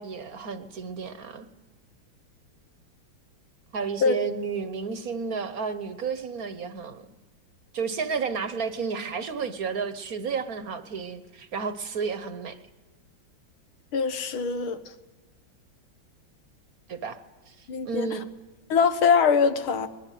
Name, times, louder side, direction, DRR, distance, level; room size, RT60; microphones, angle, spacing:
voice 1, 0.0-1.5 3.7-7.1 7.7-12.6 16.9-17.2 17.5-18.2, right 5 dB, 50° right, 1.3 m, -32 dB
voice 2, 13.9-14.8 17.7-18.1 18.7-19.9, left 6 dB, 85° left, 2.1 m, -22 dB
22.0 x 20.5 x 9.2 m
omnidirectional pair, 2.2 m